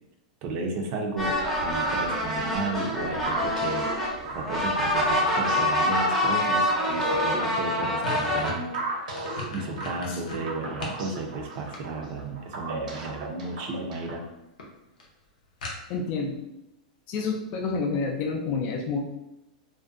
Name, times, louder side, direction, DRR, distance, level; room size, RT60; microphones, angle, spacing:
voice 1, 0.4-8.7 9.5-14.2, right 3 dB, 45° right, 2 dB, 0.5 m, -34 dB
sound 1, 1.2-8.5, left 1 dB, ahead, 0.7 m, -26 dB
sound 2, 3.2-14.3, right 2 dB, 85° right, 0.8 m, -36 dB
sound 3, 8.0-11.0 11.4-12.3 13.4-13.8 14.2-14.3 14.6-14.7 15.0-15.1 15.6-16.2, left 3 dB, 85° left, 0.6 m, -38 dB
voice 2, 15.9-16.4 17.1-19.0, left 4 dB, 40° left, 1 dB, 0.4 m, -29 dB
2.5 x 2.1 x 2.4 m, 0.87 s
hypercardioid pair, 130°, 4 cm